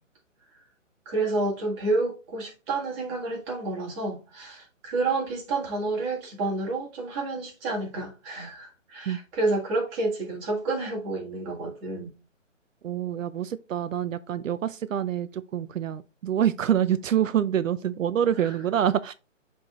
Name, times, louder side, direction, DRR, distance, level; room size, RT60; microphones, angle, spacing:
voice 1, 1.1-12.1 18.4-18.6, right 2 dB, 20° right, 1.9 m, -29 dB
voice 2, 12.8-19.1, right 9 dB, 80° right, 0.5 m, -26 dB
11.0 x 3.7 x 2.4 m
hypercardioid pair, 150°, 39 cm